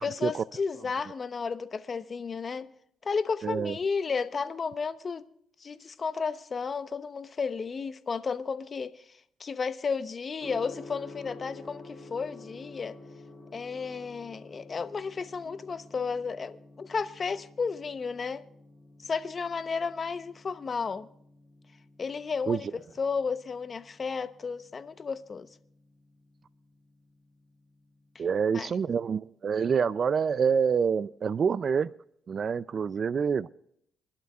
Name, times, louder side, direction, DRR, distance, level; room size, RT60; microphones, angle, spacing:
voice 1, 0.0-2.7 3.0-5.2 5.6-9.0 9.4-13.0 13.5-18.4 19.0-21.1 22.0-22.7 23.0-25.5 28.1-28.2 28.5-28.7, left 5 dB, 40° left, 0.9 m, -33 dB
voice 2, 3.4-3.8 22.5-22.6 28.2-31.9 32.3-33.5, right 6 dB, 50° right, 0.4 m, -27 dB
Gong, 10.4-28.3, left 2 dB, ahead, 5.5 m, -51 dB
25.5 x 11.5 x 2.4 m
cardioid pair, 90°, 0 cm